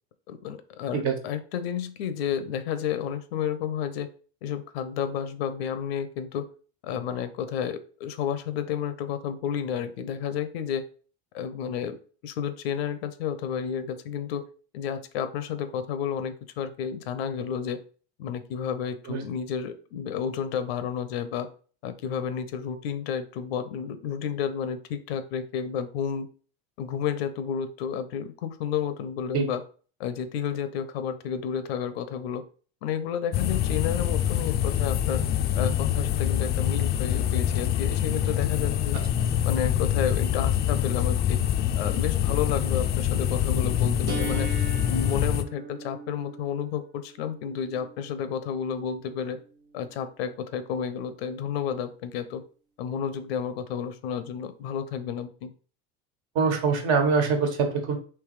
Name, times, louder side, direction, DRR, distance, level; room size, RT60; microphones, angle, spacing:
voice 1, 0.3-4.1 4.4-6.5 6.8-10.8 11.3-12.0 12.2-14.4 14.7-17.8 18.2-21.5 21.8-26.3 26.8-29.6 30.0-32.4 32.8-35.2 35.5-39.0 39.4-41.4 41.8-44.5 44.9-49.4 49.7-52.4 52.8-55.5, left 8 dB, 85° left, 11 dB, 0.7 m, -31 dB
sound 1, 33.3-45.4, left 10 dB, 35° left, 0.4 m, -25 dB
sound 2, 44.1-50.0, right 4 dB, 35° right, 1.0 m, -41 dB
voice 2, 56.3-58.0, right 5 dB, 55° right, 4 dB, 1.4 m, -24 dB
3.4 x 3.1 x 4.8 m, 0.41 s
supercardioid pair, 120°, 30 cm